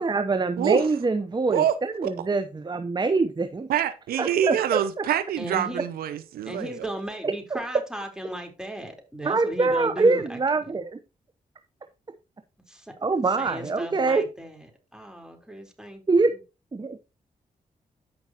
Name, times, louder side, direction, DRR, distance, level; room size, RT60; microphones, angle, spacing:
voice 1, 0.0-3.5 4.2-5.0 7.2-7.6 9.2-11.0 13.0-14.2 16.1-16.3 16.7-17.0, right 3 dB, 30° right, 0.8 m, -24 dB
voice 2, 0.6-0.9 1.5-1.8 2.0-2.1 3.7-6.9, right 10 dB, 85° right, 0.6 m, -25 dB
voice 3, 5.4-5.9 6.4-10.7 12.7-16.0, right 1 dB, 5° right, 3.7 m, -36 dB
14.0 x 5.3 x 2.9 m
supercardioid pair, 50°, 15 cm